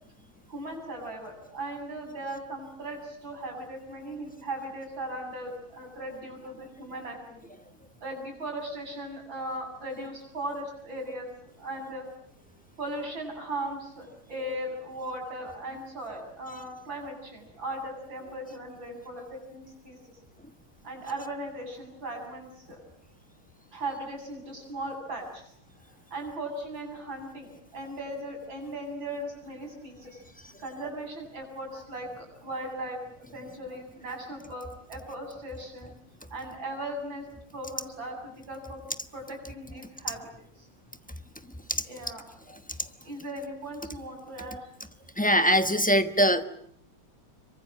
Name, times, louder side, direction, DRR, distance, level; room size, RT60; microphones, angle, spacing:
voice 1, 0.5-7.4 8.0-12.1 12.8-20.0 20.8-22.8 23.7-25.5 26.1-30.2 30.6-35.9 36.3-37.3 37.5-38.9 39.1-40.3 41.9-42.2 43.0-44.7, right 1 dB, 65° right, 2 dB, 8.8 m, -38 dB
voice 2, 45.2-46.4, equal, 5° left, 9 dB, 0.6 m, -22 dB
26.5 x 24.0 x 8.8 m, 0.65 s
omnidirectional pair, 2.3 m